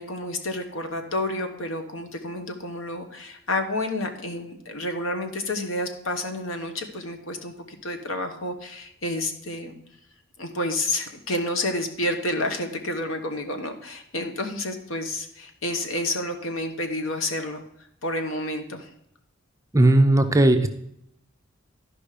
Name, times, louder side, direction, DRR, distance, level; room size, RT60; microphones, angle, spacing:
voice 1, 0.0-9.8 10.4-17.6 18.0-18.9, left 1 dB, 75° left, 6 dB, 1.2 m, -30 dB
voice 2, 19.7-20.7, right 1 dB, 15° right, 7 dB, 0.6 m, -17 dB
12.0 x 5.3 x 5.0 m, 0.76 s
head